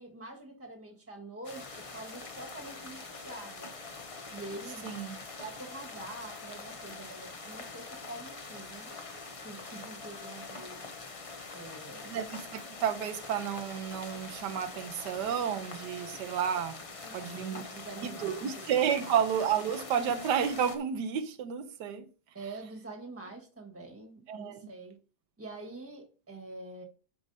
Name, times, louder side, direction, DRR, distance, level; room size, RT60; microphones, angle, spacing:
voice 1, 0.0-3.7 4.3-4.9 5.4-9.0 9.4-10.9 11.5-12.2 17.0-18.5 19.0-19.1 22.3-24.9 25.4-26.8, right 2 dB, 10° right, 1.3 m, -46 dB
sound 1, 1.4-20.8, left 3 dB, 50° left, 0.4 m, -44 dB
voice 2, 4.8-5.2 12.1-16.8 17.1-17.6 18.0-22.1 24.3-24.7, right 8 dB, 85° right, 1.3 m, -31 dB
11.5 x 4.8 x 2.7 m
omnidirectional pair, 1.8 m